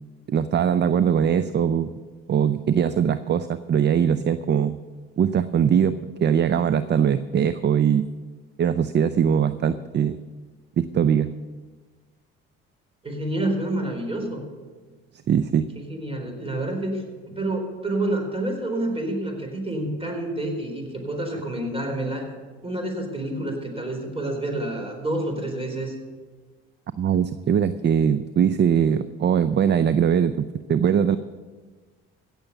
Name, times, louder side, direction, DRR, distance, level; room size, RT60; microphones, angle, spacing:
voice 1, 0.3-1.9 2.3-4.8 5.2-8.1 8.6-10.2 10.8-11.3 15.3-15.7 27.0-31.2, right 8 dB, 35° right, 13 dB, 0.5 m, -21 dB
voice 2, 13.0-14.4 15.8-22.3 22.6-25.9, right 1 dB, 20° right, 3 dB, 4.2 m, -28 dB
16.5 x 7.1 x 6.8 m, 1.4 s
hypercardioid pair, 60°, 30 cm